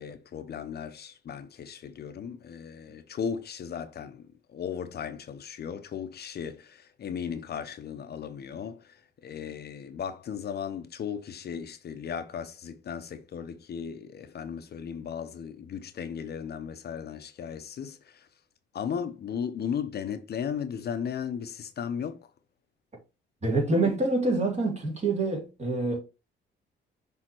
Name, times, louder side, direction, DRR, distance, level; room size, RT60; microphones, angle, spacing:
voice 1, 0.0-18.3 18.7-22.2, left 7 dB, 55° left, 0.8 m, -36 dB
voice 2, 23.4-26.0, right 2 dB, 35° right, 2.9 m, -26 dB
6.0 x 3.5 x 4.5 m
cardioid pair, 90°, 20 cm